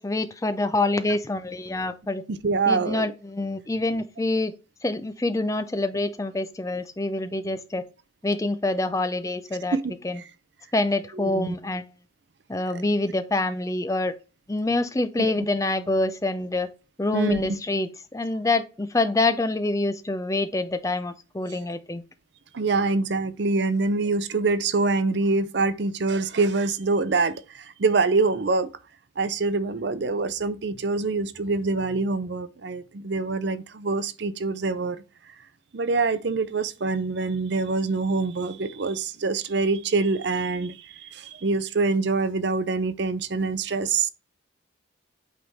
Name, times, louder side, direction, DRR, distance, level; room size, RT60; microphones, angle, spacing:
voice 1, 0.0-2.2 2.7-4.5 4.8-7.8 8.2-9.8 10.0-10.2 10.7-11.9 12.5-14.1 14.5-16.7 17.0-22.0, left 2 dB, 15° left, 0.4 m, -26 dB
voice 2, 2.3-3.1 9.7-10.2 11.1-11.6 12.7-12.8 15.2-15.5 17.1-17.4 22.5-28.7 29.2-35.0 35.7-44.1, right 3 dB, 60° right, 0.5 m, -25 dB
8.5 x 3.6 x 4.0 m
head